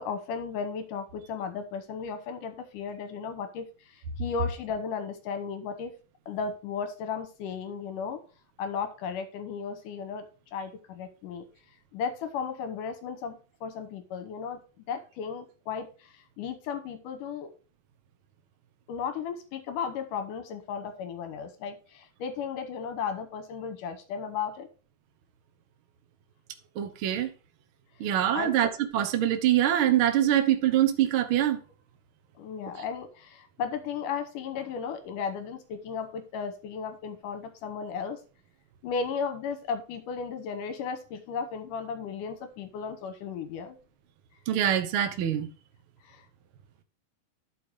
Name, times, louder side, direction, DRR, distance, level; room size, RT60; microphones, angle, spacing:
voice 1, 0.0-3.7 4.2-5.9 6.3-8.2 8.6-10.2 10.5-11.4 11.9-14.6 14.9-15.9 16.4-17.5 18.9-24.7 28.3-28.5 32.4-38.2 38.8-43.8 46.1-46.2, left 6 dB, 80° left, 2.5 m, -35 dB
voice 2, 26.8-27.3 28.0-31.6 44.5-45.5, right 11 dB, 70° right, 1.2 m, -24 dB
12.5 x 5.0 x 3.6 m
omnidirectional pair, 3.8 m